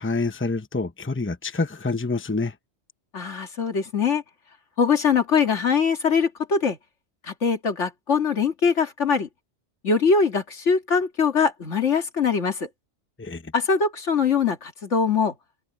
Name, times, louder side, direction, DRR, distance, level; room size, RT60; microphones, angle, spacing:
voice 1, 0.0-2.5 13.2-13.5, left 3 dB, 10° left, 0.9 m, -27 dB
voice 2, 3.1-4.2 4.8-6.8 7.3-9.3 9.8-12.7 13.5-15.3, left 5 dB, 80° left, 2.2 m, -22 dB
omnidirectional pair, 1.2 m